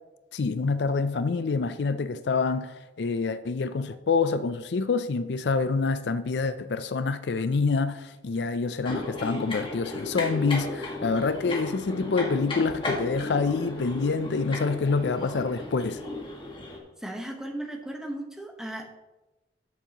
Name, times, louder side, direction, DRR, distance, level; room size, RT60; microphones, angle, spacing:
voice 1, 0.3-16.0, left 4 dB, 70° left, 0.4 m, -27 dB
sound 1, 8.8-16.8, left 2 dB, 30° left, 1.7 m, -34 dB
voice 2, 17.0-18.9, right 1 dB, 5° right, 1.1 m, -36 dB
12.5 x 7.1 x 2.9 m
head